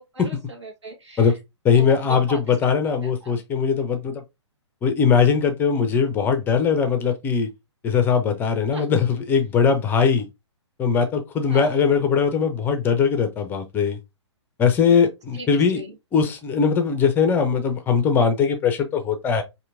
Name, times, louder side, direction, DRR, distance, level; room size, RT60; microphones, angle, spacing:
voice 1, 0.0-1.4 1.7-2.6 2.8-3.4 8.7-8.9 11.5-11.8 14.9-15.0 15.3-15.9, right 3 dB, 70° right, 1.5 m, -38 dB
voice 2, 1.6-4.1 4.8-7.5 7.8-10.2 10.8-14.0 14.6-15.8 16.1-19.4, left 6 dB, 15° left, 0.5 m, -20 dB
4.3 x 2.7 x 2.5 m
figure-of-eight pair, 120°, 15 cm